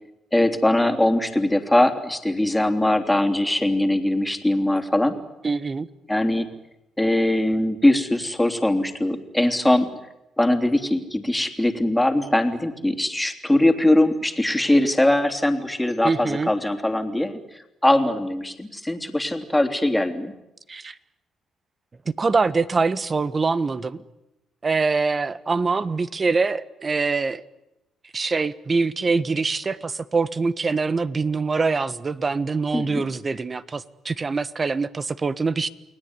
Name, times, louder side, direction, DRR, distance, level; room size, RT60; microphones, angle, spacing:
voice 1, 0.3-5.1 6.1-6.5 7.0-9.9 10.4-20.3 32.7-33.0, left 1 dB, 5° left, 5 dB, 3.2 m, -21 dB
voice 2, 5.4-5.9 16.0-16.5 20.7-20.9 22.0-24.0 24.6-27.4 28.1-35.7, right 4 dB, 30° right, 15 dB, 1.3 m, -24 dB
29.5 x 20.0 x 9.8 m, 0.90 s
cardioid pair, 90°, 0 cm